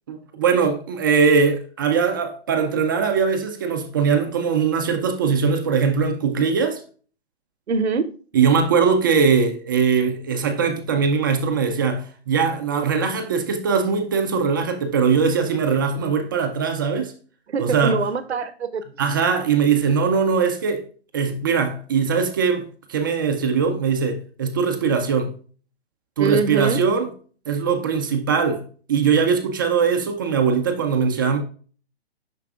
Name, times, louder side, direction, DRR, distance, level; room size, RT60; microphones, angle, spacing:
voice 1, 0.1-6.8 8.3-17.1 17.6-18.0 19.0-20.8 21.1-25.3 26.2-27.1 27.5-28.6 28.9-31.4, right 6 dB, 20° right, 0.4 m, -21 dB
voice 2, 7.7-8.1 17.5-18.8 26.2-26.8, right 4 dB, 85° right, 0.7 m, -23 dB
6.8 x 5.9 x 2.4 m
hypercardioid pair, 135°, 32 cm